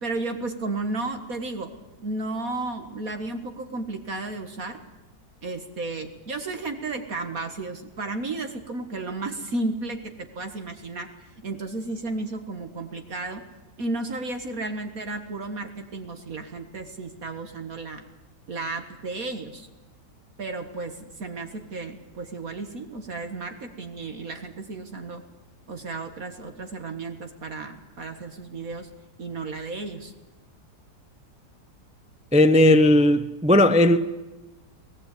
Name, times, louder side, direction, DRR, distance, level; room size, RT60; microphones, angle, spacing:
voice 1, 0.0-1.7 2.0-4.8 5.4-11.1 11.4-13.4 13.8-18.0 18.5-19.7 20.4-25.2 25.7-28.9 29.2-30.1, right 3 dB, 60° right, 2.0 m, -33 dB
voice 2, 32.3-34.1, left 1 dB, 5° right, 0.5 m, -17 dB
23.5 x 18.5 x 8.4 m
omnidirectional pair, 1.8 m